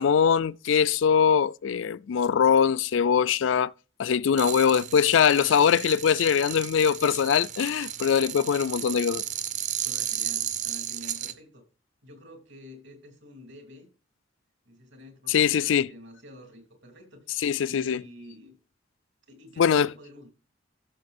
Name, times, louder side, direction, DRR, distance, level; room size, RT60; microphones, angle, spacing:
voice 1, 0.0-3.7 4.0-9.2 15.3-15.9 17.4-18.0 19.6-19.9, left 7 dB, 75° left, 0.4 m, -22 dB
sound 1, 4.3-11.3, right 10 dB, 40° right, 0.7 m, -34 dB
voice 2, 9.8-11.6 12.0-13.9 14.6-17.3 17.7-18.6 19.3-20.3, left 1 dB, 65° right, 3.0 m, -48 dB
13.5 x 6.6 x 2.6 m
head